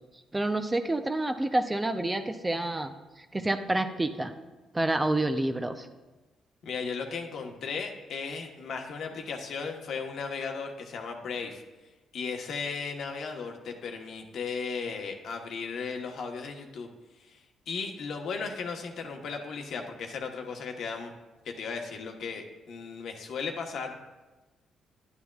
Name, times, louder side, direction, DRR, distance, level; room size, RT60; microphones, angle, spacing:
voice 1, 0.3-4.3 4.7-5.9, right 2 dB, 15° right, 7 dB, 0.5 m, -28 dB
voice 2, 6.6-11.6 12.1-16.9 17.2-17.4 17.7-21.1 21.4-23.9, left 5 dB, 65° left, 3 dB, 1.1 m, -36 dB
11.0 x 9.8 x 2.3 m, 1.2 s
cardioid pair, 90°, 0 cm